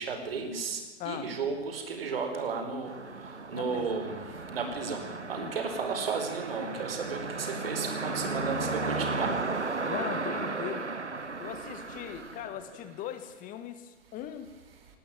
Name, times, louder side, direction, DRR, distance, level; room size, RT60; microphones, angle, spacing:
voice 1, 0.0-9.4, right 5 dB, 55° right, 6 dB, 5.0 m, -34 dB
voice 2, 1.0-1.3 3.5-4.0 5.4-5.6 8.0-8.3 9.8-10.8 11.4-14.5, left 10 dB, 25° left, 11 dB, 1.5 m, -40 dB
sound 1, 2.8-13.1, right 3 dB, 85° right, 1.3 m, -35 dB
18.5 x 18.0 x 9.2 m, 1.3 s
figure-of-eight pair, 110°, 34 cm